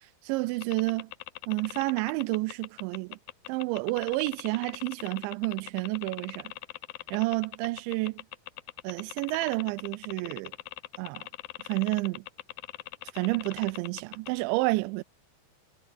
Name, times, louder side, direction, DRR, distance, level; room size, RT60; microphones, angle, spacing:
voice 1, 0.2-1.1 1.5-3.2 3.5-6.5 7.1-8.2 8.8-10.5 11.0-11.3 11.6-12.2 13.1-15.0, right 23 dB, 85° right, 2.9 m, -30 dB
sound 1, 0.6-14.4, left 17 dB, 85° left, 2.1 m, -41 dB
omnidirectional pair, 5.2 m